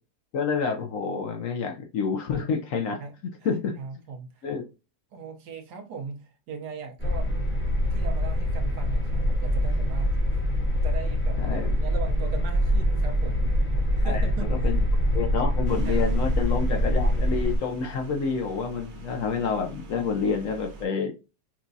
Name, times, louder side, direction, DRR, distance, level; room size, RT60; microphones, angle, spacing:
voice 1, 0.3-3.0 3.4-3.8 4.4-4.6 11.4-11.7 14.0-14.8 15.1-21.1, left 5 dB, 65° left, 0.9 m, -28 dB
voice 2, 3.8-4.5 5.1-7.3 7.9-10.2 10.8-13.5 13.9-14.8 15.8-16.1, right 5 dB, 75° right, 1.4 m, -39 dB
sound 1, 7.0-17.6, equal, 10° left, 0.6 m, -24 dB
sound 2, 15.7-20.9, right 2 dB, 50° right, 0.6 m, -43 dB
5.9 x 2.3 x 2.6 m
omnidirectional pair, 1.7 m